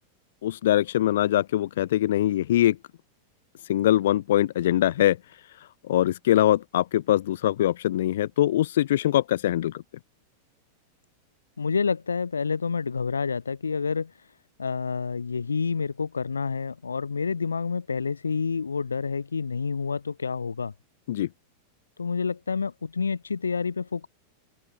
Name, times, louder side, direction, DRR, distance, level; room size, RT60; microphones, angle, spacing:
voice 1, 0.4-2.8 3.7-5.2 5.6-9.8 21.1-21.3, left 13 dB, 60° left, 1.1 m, -23 dB
voice 2, 11.6-14.1 14.6-20.7 22.0-24.1, left 5 dB, 75° left, 2.8 m, -28 dB
open air
figure-of-eight pair, 90°, 0 cm